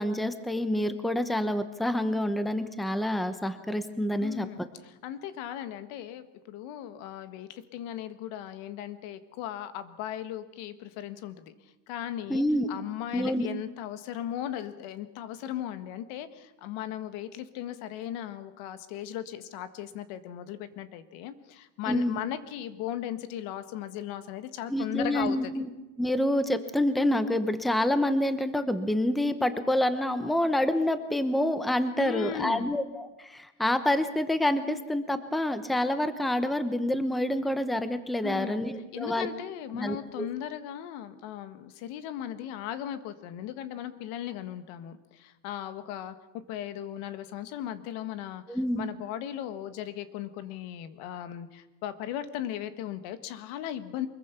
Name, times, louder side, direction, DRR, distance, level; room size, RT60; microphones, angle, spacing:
voice 1, 0.0-4.5 12.3-12.7 13.1-13.5 21.9-22.2 24.7-25.7 26.0-39.3 39.7-40.3 48.5-48.9, left 1 dB, ahead, 10 dB, 0.9 m, -27 dB
voice 2, 4.2-11.5 11.9-12.4 12.7-25.6 32.0-32.7 38.2-38.6 38.9-46.2 46.5-54.1, left 11 dB, 85° left, 11 dB, 1.8 m, -37 dB
24.0 x 22.0 x 6.0 m, 1.1 s
cardioid pair, 155°, 48 cm